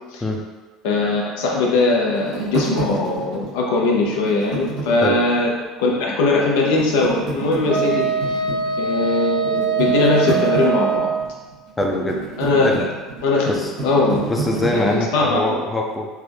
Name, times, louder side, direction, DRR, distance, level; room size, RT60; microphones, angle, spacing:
voice 1, 0.8-5.5 5.8-8.1 8.8-11.1 12.4-12.9 13.2-14.2 14.7-15.6, left 3 dB, 80° left, -1 dB, 0.6 m, -20 dB
sound 1, 1.5-5.5 6.0-6.1 6.6-15.0, right 3 dB, 85° right, 1.4 m, -30 dB
Wind instrument woodwind instrument, 7.7-11.3, right 6 dB, 65° right, 0.5 m, -22 dB
voice 2, 11.8-12.2 12.6-12.8 13.5-13.7 14.3-16.1, left 1 dB, 15° left, 0 dB, 0.5 m, -23 dB
3.3 x 2.0 x 3.3 m, 1.3 s
supercardioid pair, 85°, 0 cm